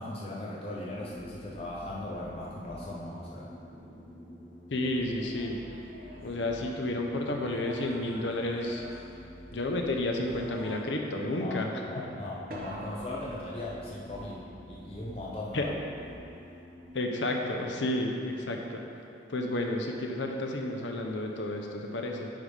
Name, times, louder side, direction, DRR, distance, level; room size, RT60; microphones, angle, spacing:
voice 1, 0.0-3.5 11.4-15.7, left 1 dB, 30° left, -5 dB, 0.7 m, -39 dB
sound 1, 0.7-16.9, left 1 dB, 60° left, 1.6 m, -49 dB
sound 2, 0.9-2.8 4.7-6.6 8.5-10.4 12.3-16.1, equal, ahead, 1.7 m, -54 dB
voice 2, 4.7-5.6 6.2-8.8 9.5-11.7 15.5-15.7 16.9-18.9 19.3-22.3, left 1 dB, 80° left, 2 dB, 0.8 m, -31 dB
sound 3, 5.0-6.9 7.3-9.8 10.2-11.2 12.5-14.1 17.5-18.1, equal, 50° right, 1.0 m, -46 dB
9.5 x 3.5 x 4.9 m, 2.7 s
head